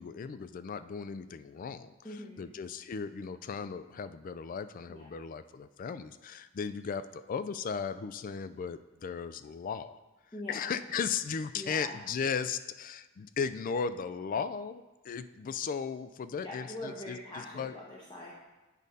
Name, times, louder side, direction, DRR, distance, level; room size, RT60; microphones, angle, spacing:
voice 1, 0.0-10.0 10.5-17.7, left 6 dB, 40° left, 13 dB, 0.3 m, -36 dB
voice 2, 2.0-2.5 4.9-5.1 10.3-10.7 11.5-12.0 16.4-18.3, left 1 dB, 25° left, -3 dB, 0.9 m, -43 dB
8.3 x 4.1 x 5.2 m, 1.1 s
head